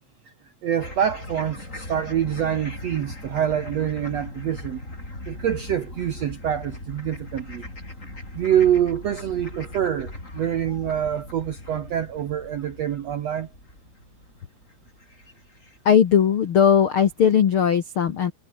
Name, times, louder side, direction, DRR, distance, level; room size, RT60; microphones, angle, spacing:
voice 1, 0.6-4.8 5.3-7.7 8.3-13.5, right 10 dB, 70° right, 1.6 m, -25 dB
sound 1, 0.8-16.2, left 2 dB, 20° left, 7.0 m, -39 dB
voice 2, 15.8-18.3, left 8 dB, 75° left, 1.2 m, -18 dB
omnidirectional pair, 4.6 m